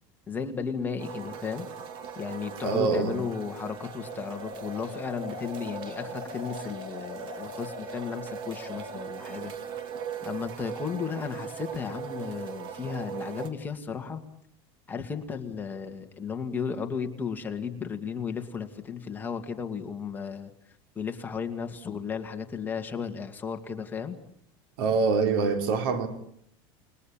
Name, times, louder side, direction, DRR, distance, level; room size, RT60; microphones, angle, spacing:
voice 1, 0.3-1.7 2.2-9.5 10.2-14.2 14.9-20.5 21.0-24.2, left 6 dB, 15° left, 2.2 m, -34 dB
sound 1, 1.0-13.5, right 7 dB, 40° right, 2.3 m, -40 dB
voice 2, 2.6-3.1 24.8-26.1, right 4 dB, 80° right, 4.0 m, -25 dB
sound 2, 4.1-9.0, left 3 dB, 40° left, 7.3 m, -42 dB
29.5 x 21.0 x 8.7 m
cardioid pair, 160°, 12 cm